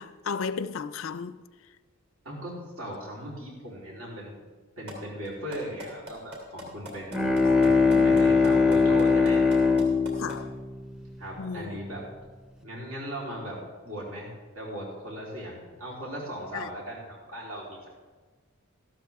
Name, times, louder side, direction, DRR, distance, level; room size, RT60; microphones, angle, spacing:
voice 1, 0.0-1.3 7.4-8.3 10.2-10.5 11.4-11.8 16.5-16.7, left 5 dB, 65° left, 0.5 m, -34 dB
voice 2, 2.2-4.4 4.8-7.2 7.6-9.5 11.2-12.0 12.6-17.9, equal, 75° right, 3.8 m, -38 dB
sound 1, 4.9-5.0 5.2-10.4, equal, 50° right, 2.8 m, -41 dB
Bowed string instrument, 6.9-11.7, left 4 dB, 5° right, 0.6 m, -22 dB
13.5 x 12.5 x 3.6 m
head